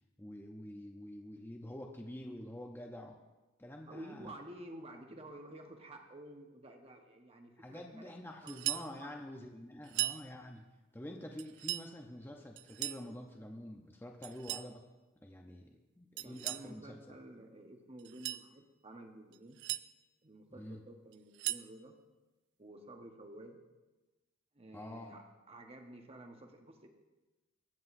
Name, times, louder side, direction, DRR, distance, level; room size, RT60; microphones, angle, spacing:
voice 1, 0.2-3.2 3.6-4.4 7.6-10.6 10.9-14.8 15.2-17.0 20.5-20.8 24.7-25.2, left 1 dB, 10° left, 1 dB, 0.7 m, -47 dB
voice 2, 3.9-8.1 8.4-9.1 16.2-19.6 20.2-21.9 22.6-23.6 24.5-26.9, right 1 dB, 30° right, 4 dB, 1.1 m, -52 dB
sound 1, 8.5-8.9 9.8-10.2 11.4-11.9 12.6-13.1 14.2-14.7 16.2-16.7 18.0-18.5 19.3-19.8 21.1-21.7, right 16 dB, 60° right, 0.3 m, -38 dB
23.0 x 7.9 x 2.6 m, 1.1 s
head